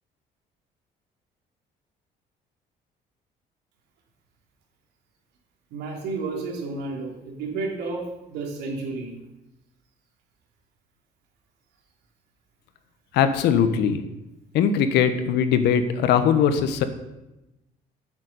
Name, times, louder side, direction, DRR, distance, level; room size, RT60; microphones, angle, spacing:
voice 1, 5.7-9.1, right 3 dB, 90° right, 1 dB, 3.2 m, -31 dB
voice 2, 13.1-14.0 14.5-16.8, left 8 dB, 80° left, 10 dB, 1.3 m, -20 dB
9.5 x 7.5 x 8.2 m, 0.96 s
cardioid pair, 110°, 17 cm